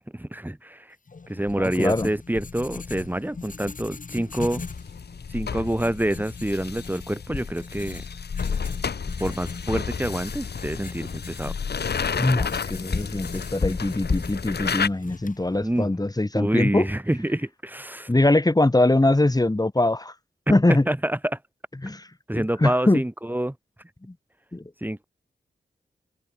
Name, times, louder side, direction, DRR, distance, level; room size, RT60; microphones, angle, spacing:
voice 1, 0.1-1.0 1.3-4.6 5.3-8.0 9.2-11.5 15.6-15.9 16.3-18.1 20.5-21.4 22.3-23.5 24.8-25.0, right 1 dB, 10° right, 4.7 m, -27 dB
Writing, 1.1-15.9, left 4 dB, 50° left, 5.3 m, -36 dB
voice 2, 1.6-2.1 12.2-16.9 18.1-20.1 20.5-20.8 21.8-22.1 22.3-23.0 24.1-24.2 24.5-24.6, left 2 dB, 20° left, 5.9 m, -22 dB
sound 1, 4.6-14.9, left 6 dB, 75° left, 3.9 m, -32 dB
open air
cardioid pair, 60°, 17 cm